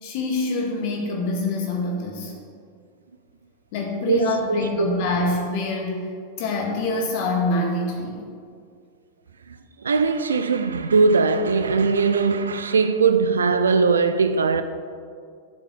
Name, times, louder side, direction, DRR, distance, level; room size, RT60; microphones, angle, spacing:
voice 1, 0.0-2.4 3.7-6.1 6.4-8.2, left 2 dB, 45° left, 1.8 m, -25 dB
voice 2, 4.1-5.0 9.8-14.6, right 4 dB, 70° right, 0.5 m, -20 dB
12.0 x 7.5 x 3.7 m
figure-of-eight pair, 90°, 0 cm